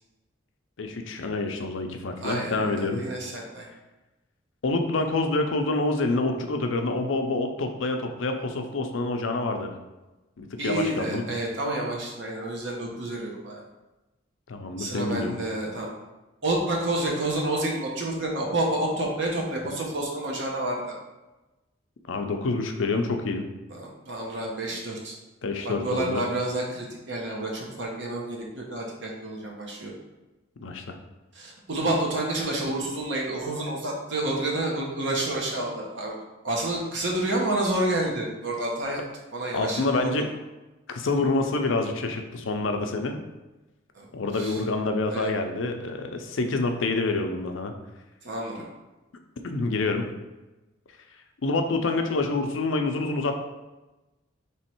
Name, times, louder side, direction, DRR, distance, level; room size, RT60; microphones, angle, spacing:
voice 1, 0.8-3.0 4.6-9.7 10.4-11.2 14.5-15.4 22.1-23.5 25.4-26.2 30.6-31.0 39.5-40.3 40.9-43.2 44.1-47.7 49.4-50.1 51.4-53.4, left 3 dB, 85° left, 5 dB, 0.5 m, -27 dB
voice 2, 2.2-3.7 10.6-13.6 14.8-15.9 16.4-21.0 23.7-25.2 25.6-29.9 31.3-36.2 36.4-39.0 39.3-40.2 43.9-44.1 44.3-44.6 45.1-45.3 48.2-48.6, right 1 dB, 65° right, -1 dB, 0.9 m, -29 dB
3.4 x 3.1 x 4.4 m, 1.1 s
head